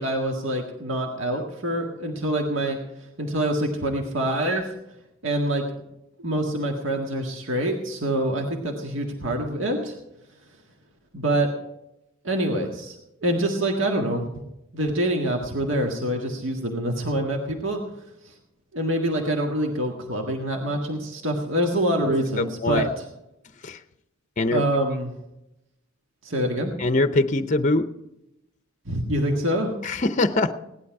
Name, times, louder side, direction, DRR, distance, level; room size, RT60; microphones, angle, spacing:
voice 1, 0.0-4.7 5.2-5.6 6.2-10.0 11.1-11.5 12.2-14.3 14.7-17.8 18.2-18.3 18.7-23.1 24.5-25.1 26.2-26.7 28.9-29.7, right 1 dB, 60° right, 1 dB, 1.8 m, -25 dB
voice 2, 26.8-27.9 29.8-30.5, left 2 dB, 35° left, 10 dB, 0.7 m, -22 dB
17.5 x 11.5 x 4.7 m, 0.88 s
head